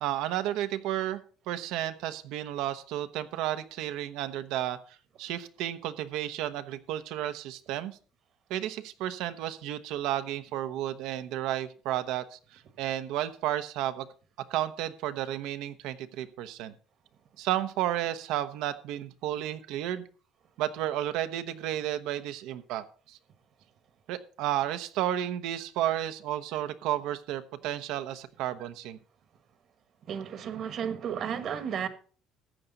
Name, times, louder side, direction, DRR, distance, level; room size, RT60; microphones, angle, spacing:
voice 1, 0.0-4.8 5.2-8.0 8.5-14.1 14.4-16.7 17.4-20.0 20.6-23.2 24.1-29.0, right 12 dB, 85° right, 1.0 m, -32 dB
voice 2, 30.1-31.9, right 8 dB, 50° right, 1.3 m, -33 dB
14.0 x 8.9 x 4.0 m
cardioid pair, 140°, 0 cm